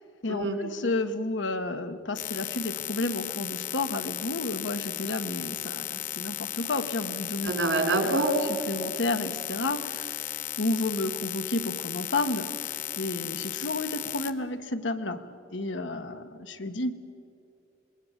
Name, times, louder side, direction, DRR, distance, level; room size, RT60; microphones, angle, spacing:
voice 1, 0.2-7.5 8.7-16.9, left 2 dB, 80° left, 8 dB, 1.3 m, -31 dB
sound 1, 2.2-14.3, left 11 dB, 45° left, 0.9 m, -35 dB
voice 2, 7.4-8.3, right 2 dB, 85° right, 4 dB, 4.2 m, -25 dB
27.0 x 21.0 x 7.4 m, 2.6 s
head